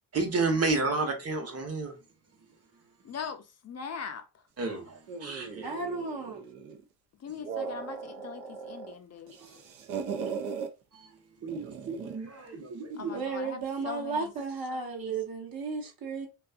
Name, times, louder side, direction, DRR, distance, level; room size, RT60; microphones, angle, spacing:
voice 1, 0.1-1.9 4.6-5.7 9.4-9.6 10.0-10.2 10.9-13.2, right 3 dB, 40° right, 0.9 m, -32 dB
voice 2, 3.0-4.2 7.2-9.4 13.0-14.3, left 6 dB, 45° left, 0.5 m, -41 dB
sound 1, 5.1-6.8 7.3-8.9 9.3-10.7 11.5-12.3, right 6 dB, 80° right, 0.6 m, -38 dB
voice 3, 5.6-6.4 9.3-9.4 13.1-16.3, right 4 dB, 65° right, 1.0 m, -34 dB
2.6 x 2.3 x 2.4 m
cardioid pair, 70°, 38 cm